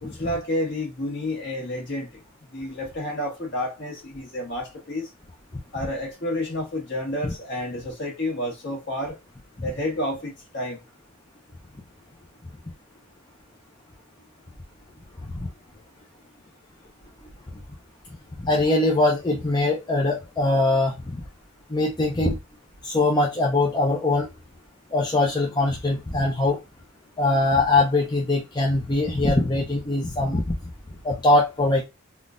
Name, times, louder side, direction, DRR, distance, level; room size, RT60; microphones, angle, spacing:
voice 1, 0.0-2.2 2.5-5.1 5.7-9.2 9.6-10.8, left 1 dB, 55° left, 1.5 m, -30 dB
voice 2, 18.4-21.2 21.7-22.4 22.8-24.3 24.9-26.6 27.2-30.4 31.0-31.8, left 2 dB, 20° left, 0.6 m, -22 dB
3.7 x 2.5 x 2.5 m
head